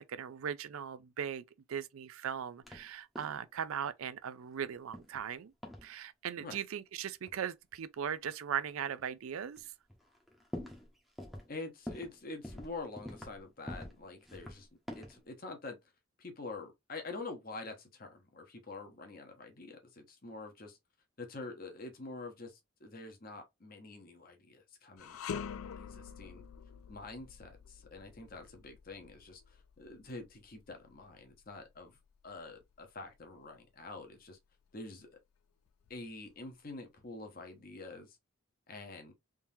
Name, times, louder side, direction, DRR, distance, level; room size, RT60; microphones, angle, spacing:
voice 1, 0.0-1.4 1.7-5.5 5.8-9.7, right 8 dB, 75° right, 0.4 m, -39 dB
sound 1, 2.6-2.9 3.2-3.5 4.9-5.3 5.6-5.9 7.2-7.4 8.3-8.4 9.0-9.1 9.6-9.7 9.9-10.9 11.2-11.5 11.9-12.2 12.4-13.4 13.7-14.0 14.3-15.2, left 1 dB, ahead, 0.9 m, -45 dB
voice 2, 11.5-14.7 15.0-15.8 16.2-20.8 21.2-26.4 26.9-34.4 34.7-35.2 35.9-38.2 38.7-39.1, left 3 dB, 40° left, 1.0 m, -46 dB
sound 2, 25.0-34.2 34.6-34.8 35.7-36.6, left 7 dB, 80° left, 0.4 m, -47 dB
3.6 x 2.9 x 2.7 m
head